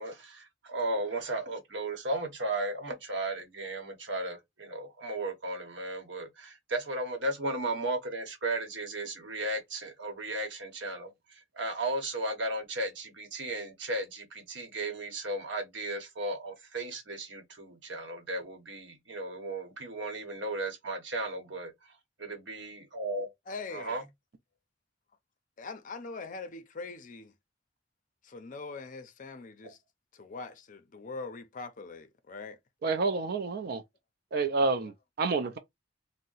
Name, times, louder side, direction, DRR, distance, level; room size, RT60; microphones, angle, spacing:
voice 1, 0.0-21.7 22.2-23.3 23.7-24.0, right 2 dB, 75° right, 1.0 m, -35 dB
voice 2, 23.5-24.0 25.6-27.3 28.2-29.8 30.1-32.6, left 4 dB, 45° left, 0.5 m, -42 dB
voice 3, 32.8-33.8 34.3-34.9 35.2-35.6, right 3 dB, 55° right, 0.4 m, -28 dB
2.7 x 2.1 x 3.8 m
head